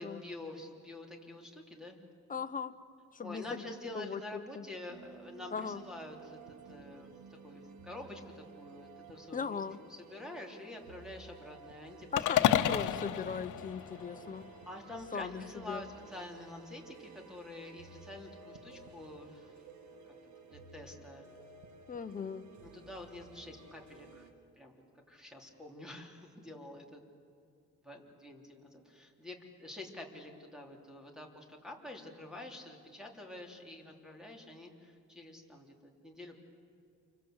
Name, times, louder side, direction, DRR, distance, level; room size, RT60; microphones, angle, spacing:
voice 1, 0.0-2.0 3.2-7.2 7.4-9.7 10.0-13.1 14.7-19.5 19.9-20.2 20.5-21.3 22.6-24.3 24.6-24.8 25.1-27.0 27.8-36.4, left 2 dB, ahead, 2 dB, 3.6 m, -47 dB
voice 2, 2.3-2.7 3.1-4.7 5.5-5.8 9.3-9.8 12.1-14.5 15.1-15.8 21.9-22.5, left 6 dB, 25° left, 9 dB, 1.0 m, -39 dB
sound 1, 4.9-24.3, right 5 dB, 65° right, 2.6 m, -54 dB
sound 2, 12.2-14.5, left 11 dB, 75° left, 1.1 m, -30 dB
29.5 x 25.0 x 8.0 m, 2.5 s
cardioid pair, 140°, 31 cm